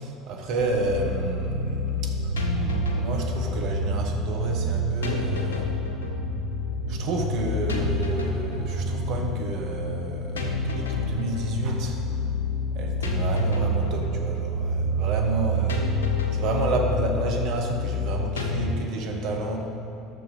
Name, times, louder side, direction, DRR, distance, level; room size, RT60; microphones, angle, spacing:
voice 1, 0.0-5.7 6.9-12.0 12.7-15.8 16.3-19.6, right 2 dB, 60° right, 2 dB, 1.4 m, -30 dB
sound 1, 0.6-18.7, left 1 dB, 80° left, 0.9 m, -27 dB
10.5 x 6.7 x 5.2 m, 2.8 s
figure-of-eight pair, 70°, 0 cm